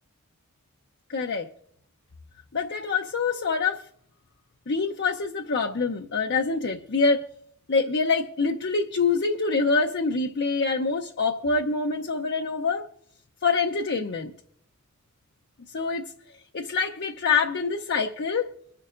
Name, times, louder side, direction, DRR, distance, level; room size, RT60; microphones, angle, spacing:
voice 1, 1.1-1.5 2.5-3.8 4.7-7.2 7.7-12.9 13.4-14.3 15.7-16.1 16.5-18.5, left 4 dB, 55° left, 0.7 m, -25 dB
26.0 x 11.5 x 2.5 m
head